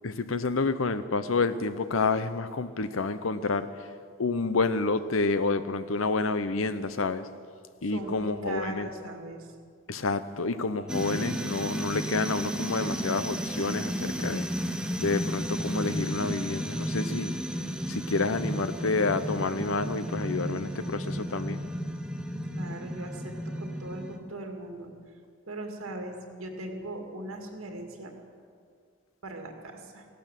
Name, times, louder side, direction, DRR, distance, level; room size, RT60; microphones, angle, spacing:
voice 1, 0.0-3.7 4.2-7.3 7.8-8.9 9.9-14.5 15.0-17.3 17.9-21.6, left 3 dB, 75° left, 12 dB, 0.7 m, -29 dB
voice 2, 7.8-9.5 22.5-24.9 25.5-28.1 29.2-30.1, right 2 dB, 85° right, 3 dB, 2.2 m, -39 dB
sound 1, 10.9-24.2, equal, 5° right, 0.8 m, -33 dB
16.0 x 12.0 x 7.5 m, 2.1 s
head